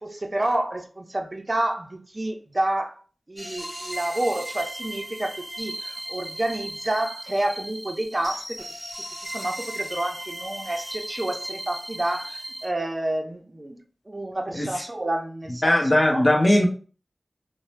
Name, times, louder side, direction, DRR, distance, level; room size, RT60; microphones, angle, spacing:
voice 1, 0.0-3.0 3.3-8.6 9.2-13.8 14.1-15.8 16.1-16.3, right 1 dB, 35° right, 0.5 m, -29 dB
sound 1, 3.4-12.7, right 1 dB, 10° left, 1.1 m, -36 dB
voice 2, 15.6-16.7, left 1 dB, 35° left, 0.7 m, -19 dB
2.7 x 2.1 x 3.1 m
wide cardioid pair, 55°, 0 cm